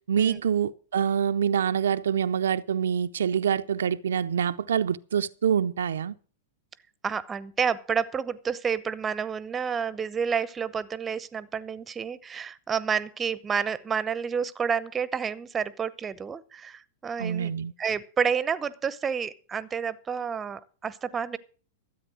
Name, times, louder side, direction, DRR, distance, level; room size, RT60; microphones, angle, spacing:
voice 1, 0.1-6.2 17.2-17.7, right 8 dB, 80° right, 0.5 m, -26 dB
voice 2, 7.0-17.5 17.8-21.4, right 6 dB, 20° right, 0.8 m, -29 dB
13.0 x 8.4 x 6.3 m
hypercardioid pair, 110°, 0 cm